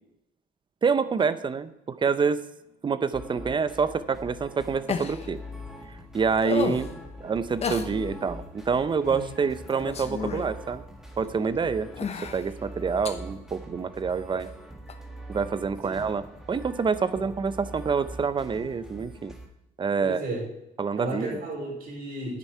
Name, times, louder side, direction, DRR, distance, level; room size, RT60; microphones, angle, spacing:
voice 1, 0.8-2.4 2.8-5.4 6.1-6.9 7.2-10.8 11.2-11.9 12.3-14.5 15.3-19.3 19.8-20.2 20.8-21.4, right 5 dB, 30° right, 14 dB, 0.7 m, -27 dB
sound 1, 3.1-19.5, equal, 5° right, 1.8 m, -43 dB
sound 2, 4.9-5.3 6.4-6.9 7.6-7.9 9.1-9.3 9.7-10.5 11.2-11.3 11.9-12.5 13.1-13.2 14.9-15.0, left 6 dB, 40° left, 1.1 m, -31 dB
voice 2, 20.0-20.4 21.0-22.4, right 2 dB, 60° right, -1 dB, 4.8 m, -33 dB
10.0 x 9.2 x 4.6 m, 0.86 s
cardioid pair, 110°, 17 cm